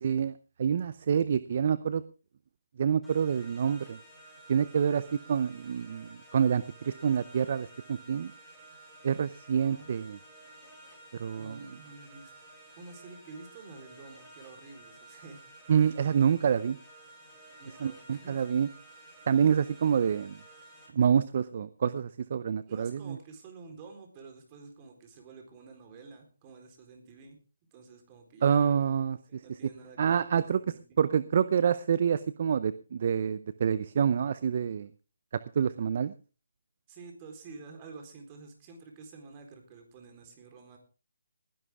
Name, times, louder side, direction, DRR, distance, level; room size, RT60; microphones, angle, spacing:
voice 1, 0.0-0.3 0.6-2.0 2.8-4.0 4.5-8.3 9.0-10.2 11.2-11.6 15.7-16.8 17.8-18.7 19.3-20.4 20.9-23.2 28.4-29.4 30.0-30.6 31.0-34.9 35.3-36.1, right 7 dB, 45° right, 15 dB, 0.6 m, -27 dB
sound 1, 3.0-20.9, right 2 dB, ahead, 6.6 m, -53 dB
voice 2, 9.6-9.9 11.3-12.3 12.8-15.4 15.8-15.9 17.6-18.5 22.7-27.4 27.7-28.8 29.3-31.0 36.9-40.8, right 4 dB, 25° right, 4 dB, 4.0 m, -49 dB
20.0 x 11.0 x 3.6 m, 0.35 s
hypercardioid pair, 160°, 0 cm